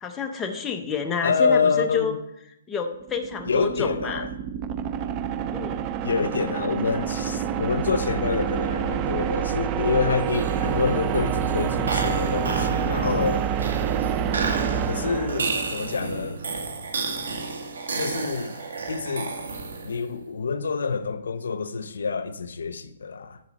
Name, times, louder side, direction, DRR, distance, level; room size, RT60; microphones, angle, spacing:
voice 1, 0.0-2.1 2.7-4.3 5.5-5.8, left 6 dB, 10° left, 0.7 m, -29 dB
voice 2, 1.2-2.2 3.4-4.3 6.0-13.4 14.9-16.4 17.9-18.6 18.9-19.4 19.8-23.4, left 5 dB, 85° left, 0.8 m, -27 dB
sound 1, 3.0-16.1, right 8 dB, 20° right, 0.4 m, -27 dB
sound 2, 10.2-20.1, right 4 dB, 85° right, 1.9 m, -32 dB
10.5 x 6.7 x 4.1 m
hypercardioid pair, 165°, 0 cm